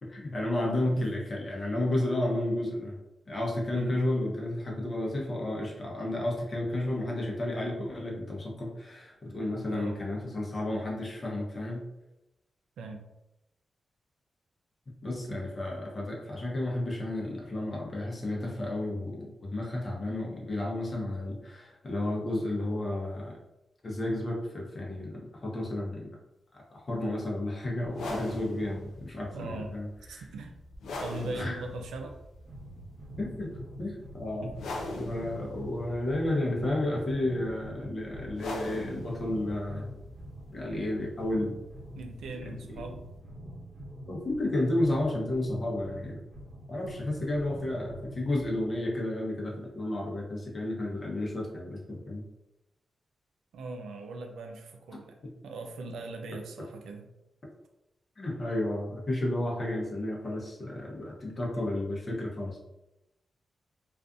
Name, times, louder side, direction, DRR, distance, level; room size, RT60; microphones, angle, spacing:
voice 1, 0.0-3.0 3.3-11.9 14.9-23.4 23.8-26.1 26.7-30.2 31.3-31.6 33.2-33.5 33.8-34.5 34.9-39.9 40.5-41.5 44.1-46.2 46.7-52.2 55.2-55.3 58.2-62.6, left 1 dB, 50° left, -2 dB, 0.8 m, -32 dB
voice 2, 0.7-1.1 3.7-4.0 9.7-10.0 12.8-13.0 15.3-15.5 29.3-29.8 30.0-30.6 31.0-32.2 34.4-34.6 35.6-35.7 41.9-43.1 53.5-55.2 55.4-57.1, right 2 dB, 85° right, 4 dB, 0.3 m, -40 dB
sound 1, 27.9-43.2, left 2 dB, 85° left, 0.4 m, -43 dB
sound 2, 32.4-48.9, right 1 dB, 55° right, 0.8 m, -46 dB
2.4 x 2.4 x 2.4 m, 0.92 s
supercardioid pair, 45°, 0 cm